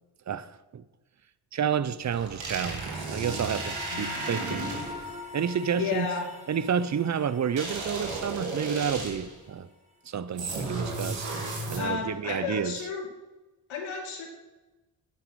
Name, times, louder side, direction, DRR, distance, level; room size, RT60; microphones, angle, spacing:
voice 1, 0.3-0.8 1.5-4.7 5.3-6.1 6.5-9.7 10.1-11.3 11.7-12.8, right 7 dB, 35° right, 0.7 m, -30 dB
sound 1, 2.0-5.1 7.6-9.4 10.4-12.1, right 3 dB, 70° right, 3.2 m, -34 dB
sound 2, 3.2-9.4, left 3 dB, 15° right, 2.1 m, -43 dB
voice 2, 3.9-4.3 5.7-6.3 11.8-13.1 13.7-14.3, left 5 dB, 85° left, 2.7 m, -32 dB
9.6 x 9.3 x 4.8 m
supercardioid pair, 60°, 47 cm